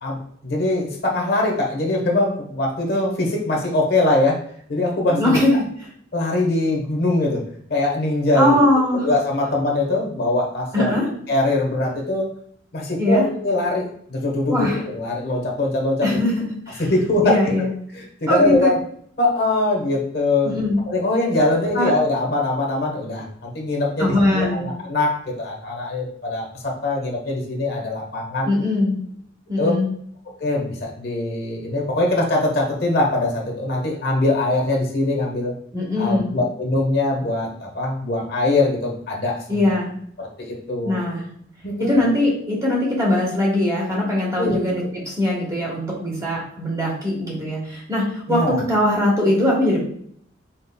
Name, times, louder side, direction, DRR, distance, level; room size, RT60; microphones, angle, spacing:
voice 1, 0.0-4.4 4.7-5.4 6.1-7.4 7.7-8.6 9.0-10.9 11.3-12.3 12.7-16.1 16.9-17.4 17.9-18.8 19.2-20.6 20.9-28.5 29.6-29.8 30.4-35.5 36.0-39.6 40.2-41.0 41.6-42.1 44.4-44.6 48.3-48.6, left 2 dB, 55° left, -1 dB, 1.2 m, -22 dB
voice 2, 5.1-5.5 8.3-9.1 10.7-11.1 13.0-13.3 14.5-14.8 16.0-16.9 17.2-17.7 18.3-18.7 20.4-20.8 21.7-21.9 24.0-24.7 28.5-28.9 29.5-29.8 35.7-36.3 39.5-39.9 40.8-41.2 41.8-49.8, left 1 dB, 20° right, -4 dB, 1.2 m, -21 dB
4.4 x 4.4 x 2.2 m, 0.63 s
head